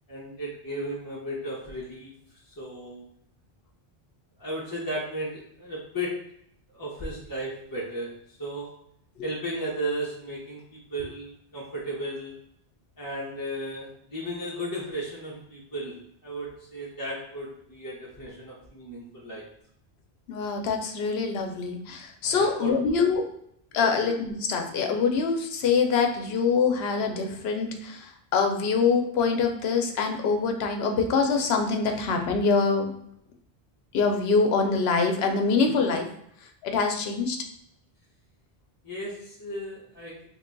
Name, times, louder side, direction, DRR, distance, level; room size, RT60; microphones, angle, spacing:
voice 1, 0.1-2.1 2.6-3.0 4.4-6.2 6.7-8.7 9.2-12.3 13.0-16.0 16.2-19.4 22.3-22.7 23.7-24.0 38.8-40.3, right 1 dB, 25° left, -6 dB, 0.6 m, -35 dB
voice 2, 20.3-23.2 23.7-32.9 33.9-36.1 36.6-37.4, left 5 dB, 80° left, 4 dB, 0.8 m, -24 dB
3.4 x 2.2 x 3.8 m, 0.71 s
omnidirectional pair, 1.0 m